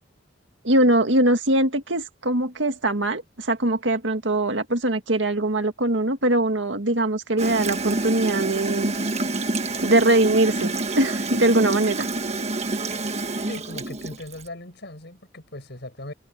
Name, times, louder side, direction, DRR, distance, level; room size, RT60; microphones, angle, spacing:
voice 1, 0.6-8.9 9.8-12.1, right 1 dB, 75° right, 2.1 m, -22 dB
Gurgling / Toilet flush, 7.4-14.5, right 2 dB, 35° right, 1.4 m, -27 dB
voice 2, 13.5-16.1, left 1 dB, 60° left, 7.5 m, -38 dB
head